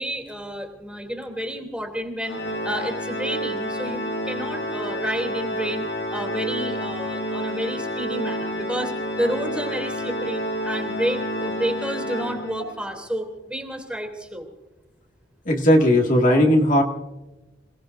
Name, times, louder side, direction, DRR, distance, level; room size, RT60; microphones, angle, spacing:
voice 1, 0.0-14.5, equal, 5° right, 3 dB, 3.0 m, -30 dB
Organ, 2.2-12.9, equal, 75° left, 2.1 m, -29 dB
voice 2, 15.5-16.8, left 1 dB, 45° left, 1 dB, 2.0 m, -17 dB
28.0 x 18.5 x 2.6 m, 1.1 s
head